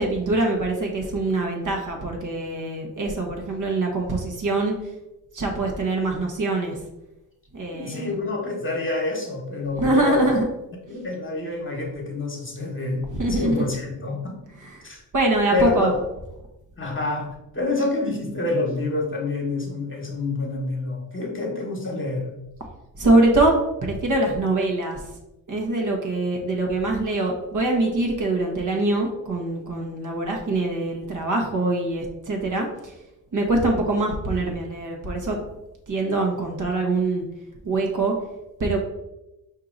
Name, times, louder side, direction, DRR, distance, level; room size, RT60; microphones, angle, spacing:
voice 1, 0.0-4.8 5.3-6.8 7.5-8.1 9.8-10.5 13.1-13.7 14.6-14.9 15.1-15.9 23.0-25.0 25.5-32.9 33.3-35.4 35.9-37.2 37.6-38.2 38.6-38.8, right 2 dB, 45° right, 1 dB, 1.2 m, -23 dB
voice 2, 7.7-10.3 10.9-13.0 13.3-14.4 14.8-15.0 15.5-16.0 16.8-22.2, left 2 dB, 25° left, 0 dB, 1.3 m, -27 dB
4.5 x 2.8 x 3.9 m, 0.94 s
supercardioid pair, 65°, 44 cm